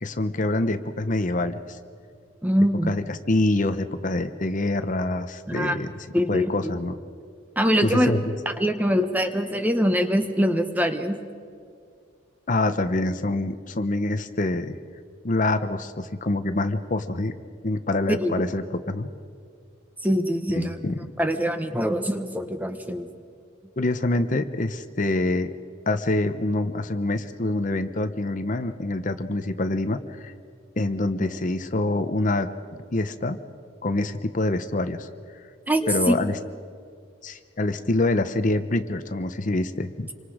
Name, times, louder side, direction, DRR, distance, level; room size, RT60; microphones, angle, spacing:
voice 1, 0.0-1.8 2.9-7.0 7.8-8.2 12.5-14.7 15.2-17.3 17.6-19.1 20.5-21.1 23.8-25.5 25.9-30.3 30.8-32.5 32.9-33.4 33.8-35.1 35.9-36.4 37.2-40.1, left 2 dB, 40° left, 9 dB, 0.8 m, -26 dB
voice 2, 2.4-2.9 5.5-5.8 6.1-6.5 7.6-8.2 8.5-11.2 18.1-18.3 20.0-20.8 21.2-23.1 35.7-36.1, equal, 10° right, 7 dB, 1.2 m, -23 dB
28.0 x 24.5 x 5.0 m, 2.2 s
head